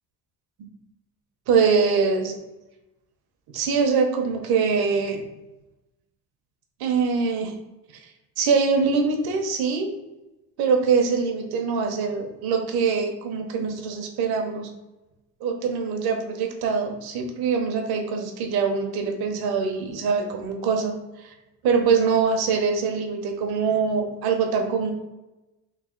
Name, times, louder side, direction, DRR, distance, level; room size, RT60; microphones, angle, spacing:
voice 1, 1.5-2.4 3.5-5.2 6.8-7.6 8.4-9.9 10.6-14.7 15.4-21.3 21.6-24.9, right 5 dB, 70° right, 4 dB, 0.8 m, -23 dB
3.2 x 2.7 x 3.7 m, 1.0 s
cardioid pair, 115°, 39 cm